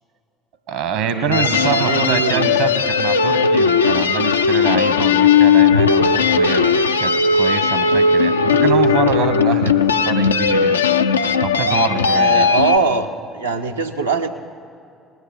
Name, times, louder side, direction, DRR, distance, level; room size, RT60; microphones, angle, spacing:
voice 1, 0.7-6.7 7.0-9.8 10.0-10.8 11.4-12.5, right 6 dB, 70° right, 9 dB, 1.3 m, -24 dB
voice 2, 1.2-2.6 12.1-13.1 13.3-14.3, right 4 dB, 90° right, 3 dB, 0.7 m, -21 dB
sound 1, 1.3-12.8, left 5 dB, 90° left, 0.3 m, -16 dB
19.0 x 8.0 x 7.2 m, 2.4 s
figure-of-eight pair, 55°, 0 cm